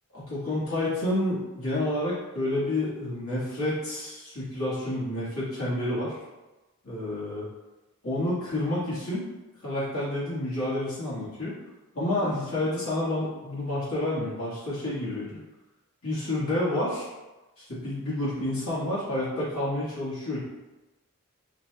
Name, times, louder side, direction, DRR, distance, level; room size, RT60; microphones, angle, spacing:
voice 1, 0.1-6.1 6.8-7.4 8.0-9.2 9.6-11.6 11.9-15.4 16.0-17.1 17.7-20.4, left 1 dB, 65° left, -10 dB, 1.4 m, -29 dB
5.0 x 2.3 x 3.1 m, 1.1 s
head